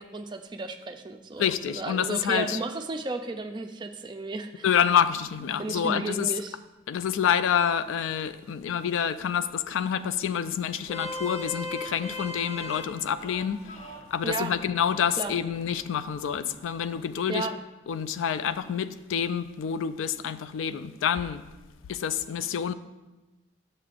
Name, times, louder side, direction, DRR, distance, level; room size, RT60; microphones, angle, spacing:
voice 1, 0.0-4.7 5.6-6.6 14.2-14.5 15.2-15.3 17.3-17.6 22.7-22.8, right 3 dB, 25° right, 5 dB, 0.3 m, -34 dB
voice 2, 1.4-2.6 4.6-6.3 6.9-17.5 17.9-21.4 21.9-22.7, left 8 dB, 85° left, 13 dB, 0.3 m, -27 dB
Vehicle horn car horn honking, 10.7-17.1, left 2 dB, 30° left, 0.6 m, -40 dB
8.4 x 6.7 x 2.5 m, 1.1 s
head